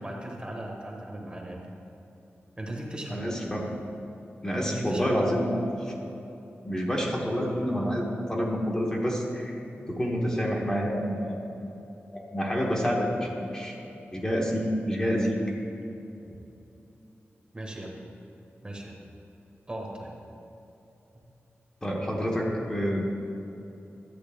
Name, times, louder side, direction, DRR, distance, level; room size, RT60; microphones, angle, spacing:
voice 1, 0.0-1.6 2.6-3.2 4.6-5.1 17.5-17.9 18.6-19.0 19.7-20.1, right 1 dB, 20° right, 0 dB, 1.2 m, -37 dB
voice 2, 3.1-3.8 4.4-5.9 6.6-9.5 9.9-11.4 12.1-13.7 14.1-15.4 21.8-23.0, equal, 15° left, -2 dB, 1.0 m, -28 dB
12.0 x 7.7 x 3.5 m, 2.9 s
wide cardioid pair, 150°, 4 cm